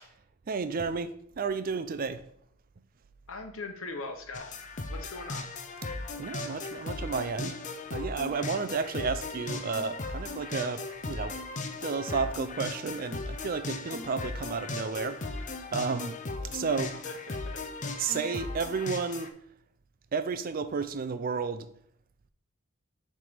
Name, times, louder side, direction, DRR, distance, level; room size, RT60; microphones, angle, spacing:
voice 1, 0.5-2.2 6.2-7.6 7.9-15.4 15.7-16.2 16.4-16.9 18.0-19.3 20.1-21.7, right 5 dB, 40° right, 11 dB, 0.4 m, -32 dB
voice 2, 3.3-4.5 4.9-5.5 17.0-17.6, left 3 dB, 70° left, 5 dB, 0.9 m, -40 dB
sound 1, 4.3-19.3, left 3 dB, 35° left, 0.5 m, -37 dB
6.8 x 3.4 x 5.0 m, 0.67 s
head